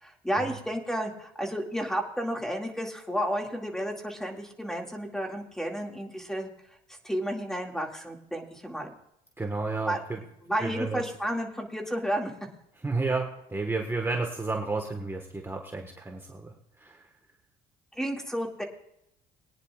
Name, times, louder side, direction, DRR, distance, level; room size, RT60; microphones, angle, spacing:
voice 1, 0.0-6.5 7.0-8.9 9.9-10.0 10.4-12.3 17.9-18.6, equal, 5° left, 2 dB, 2.3 m, -32 dB
voice 2, 9.4-10.2 10.6-11.0 12.8-16.5 16.8-17.0, right 3 dB, 15° right, 2 dB, 1.6 m, -31 dB
22.5 x 9.9 x 2.5 m, 0.79 s
cardioid pair, 110°, 17 cm